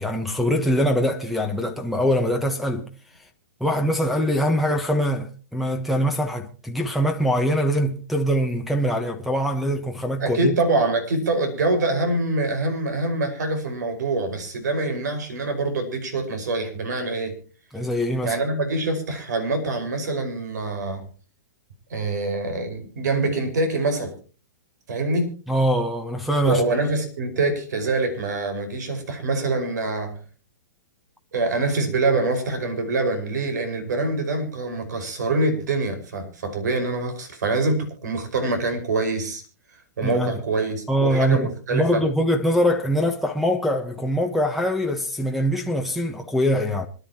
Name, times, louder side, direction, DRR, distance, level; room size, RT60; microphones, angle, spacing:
voice 1, 0.0-2.9 3.6-10.6 17.7-18.4 25.5-26.6 40.0-40.3 40.9-46.9, equal, ahead, 1.3 m, -23 dB
voice 2, 10.2-17.3 18.2-21.0 21.9-24.1 24.9-25.3 26.5-30.2 31.3-39.4 40.0-42.0, right 2 dB, 75° right, 5.3 m, -25 dB
26.0 x 11.0 x 3.0 m
hypercardioid pair, 130°, 10 cm